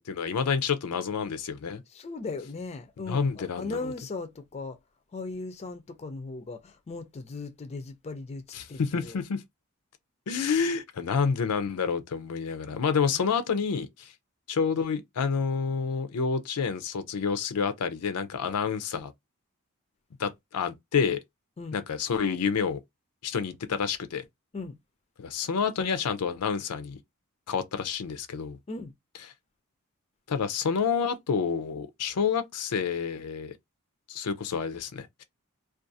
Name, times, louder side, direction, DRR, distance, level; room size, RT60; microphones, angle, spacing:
voice 1, 0.0-1.8 3.1-3.9 8.5-9.4 10.3-14.1 14.5-19.1 20.2-21.2 21.7-22.8 23.2-24.2 25.2-27.0 27.5-28.6 30.3-33.5 34.1-35.2, left 6 dB, 85° left, 0.5 m, -29 dB
voice 2, 1.9-4.8 5.1-9.2 13.1-13.2 21.6-21.8 24.5-24.8 28.7-28.9, left 3 dB, 30° left, 0.4 m, -38 dB
2.4 x 2.3 x 2.6 m
head